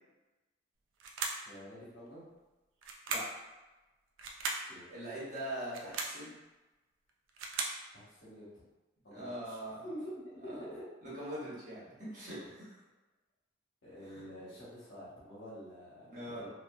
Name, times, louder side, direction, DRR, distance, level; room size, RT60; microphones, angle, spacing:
sound 1, 1.0-1.5 2.8-3.4 4.2-4.7 5.6-6.2 7.1-7.8, right 4 dB, 80° right, 0.3 m, -37 dB
voice 1, 1.4-2.3 4.7-4.9 7.9-8.5 9.0-9.6 9.8-10.8 13.8-16.1 16.4-16.5, equal, 65° left, -8 dB, 1.0 m, -47 dB
voice 2, 4.9-6.3 9.1-9.9 11.0-12.8 14.0-14.2 16.1-16.4, right 1 dB, 40° right, -9 dB, 1.1 m, -42 dB
2.6 x 2.4 x 2.2 m, 1.1 s
head